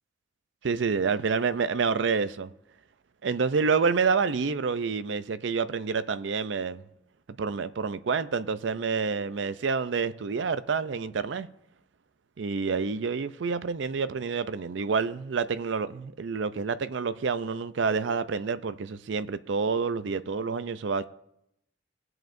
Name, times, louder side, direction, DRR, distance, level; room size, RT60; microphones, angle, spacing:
voice 1, 0.6-2.5 3.2-6.8 7.4-11.5 12.4-21.1, right 5 dB, 70° right, 0.5 m, -28 dB
20.5 x 7.8 x 2.6 m
head